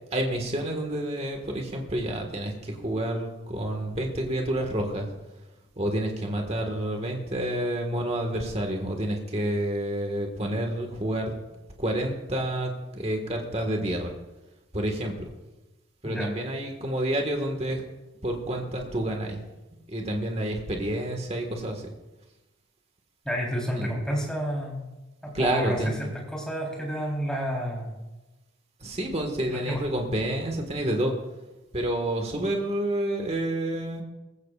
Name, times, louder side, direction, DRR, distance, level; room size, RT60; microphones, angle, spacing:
voice 1, 0.1-5.1 5.8-11.3 11.8-14.1 14.7-15.3 16.0-17.8 18.2-19.4 19.9-21.9 23.8-23.9 25.3-26.1 28.8-31.1 31.7-34.0, right 1 dB, 30° right, 3 dB, 1.8 m, -29 dB
voice 2, 23.2-24.9 25.2-27.9 29.5-29.8, equal, 5° left, -3 dB, 3.8 m, -30 dB
19.5 x 15.5 x 2.5 m, 1.1 s
head